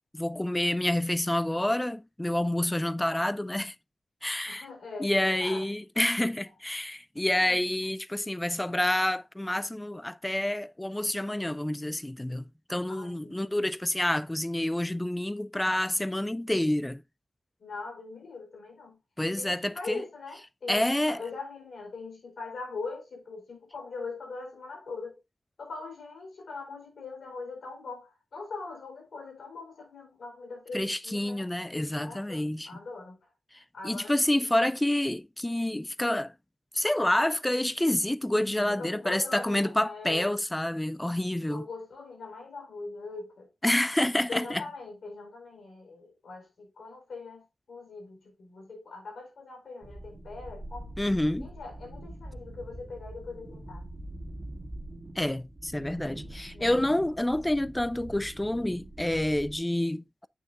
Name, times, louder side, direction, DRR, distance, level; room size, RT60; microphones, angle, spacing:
voice 1, 0.1-3.7 4.2-4.7 5.0-12.4 12.7-17.0 19.2-20.0 20.7-21.2 30.7-32.8 33.5-36.3 36.7-41.7 43.6-44.6 51.0-51.5 55.2-60.3, left 1 dB, 10° left, 0.4 m, -28 dB
voice 2, 4.5-5.8 7.3-7.6 12.9-13.6 17.6-19.0 19.4-25.2 25.6-31.5 32.0-33.2 33.7-34.5 38.7-40.4 41.5-43.5 44.3-50.9 51.4-53.9 56.5-56.8, left 3 dB, 90° left, 4.4 m, -42 dB
sound 1, 49.8-59.6, right 1 dB, 30° right, 1.7 m, -44 dB
8.4 x 6.7 x 2.4 m
wide cardioid pair, 120°, 0 cm